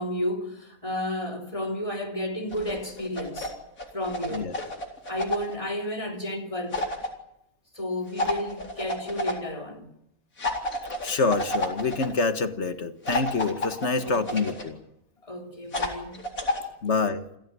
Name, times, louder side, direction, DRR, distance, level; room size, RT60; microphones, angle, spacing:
voice 1, 0.0-3.6 3.9-4.5 5.1-6.9 7.7-9.9 14.0-14.5 15.2-16.3, left 1 dB, 25° left, 3.3 m, -32 dB
sound 1, 2.5-3.5 3.8-5.6 6.7-7.1 8.2-9.3 10.4-12.1 13.1-14.6 15.7-16.6, left 1 dB, 85° left, 4.4 m, -30 dB
voice 2, 11.0-14.8 16.8-17.2, left 4 dB, 55° left, 1.9 m, -26 dB
28.5 x 16.5 x 9.7 m
omnidirectional pair, 1.4 m